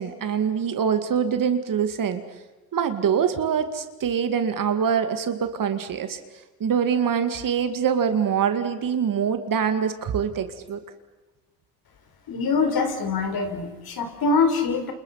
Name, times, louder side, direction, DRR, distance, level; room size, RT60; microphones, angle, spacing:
voice 1, 0.0-2.2 2.7-6.2 6.6-10.8, right 7 dB, 45° right, 8 dB, 2.2 m, -24 dB
voice 2, 12.3-14.9, left 4 dB, 50° left, 6 dB, 4.9 m, -24 dB
29.0 x 27.5 x 5.8 m, 1.1 s
supercardioid pair, 95°, 46 cm